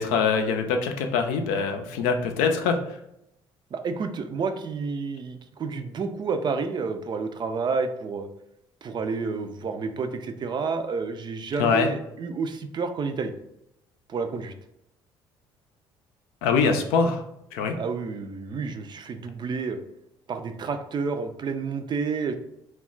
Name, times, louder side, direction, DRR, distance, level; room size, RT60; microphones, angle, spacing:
voice 1, 0.0-2.8 11.6-11.9 16.4-17.2 17.5-17.8, left 5 dB, 75° left, 5 dB, 0.4 m, -23 dB
voice 2, 3.7-8.3 8.8-13.3 14.1-14.5 17.8-19.8 20.3-22.3, right 4 dB, 35° right, 7 dB, 0.4 m, -30 dB
2.2 x 2.0 x 3.8 m, 0.80 s
hypercardioid pair, 60°, 12 cm